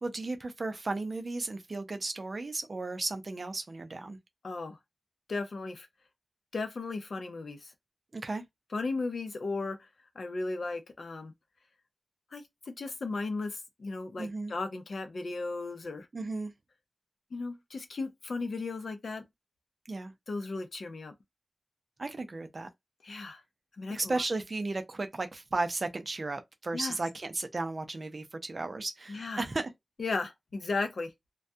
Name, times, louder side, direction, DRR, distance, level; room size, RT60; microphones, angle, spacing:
voice 1, 0.0-4.2 8.1-8.4 14.2-14.5 16.1-16.5 19.9-20.1 22.0-22.7 23.9-29.7, right 3 dB, 50° right, 0.5 m, -34 dB
voice 2, 4.4-4.8 5.3-5.9 6.5-7.7 8.7-9.9 10.2-11.3 12.3-16.1 17.3-19.3 20.3-21.1 23.0-23.4 23.8-24.2 26.7-27.0 29.1-29.4 30.0-31.1, left 3 dB, 75° left, 0.5 m, -35 dB
2.3 x 2.1 x 2.7 m
wide cardioid pair, 100°, 0 cm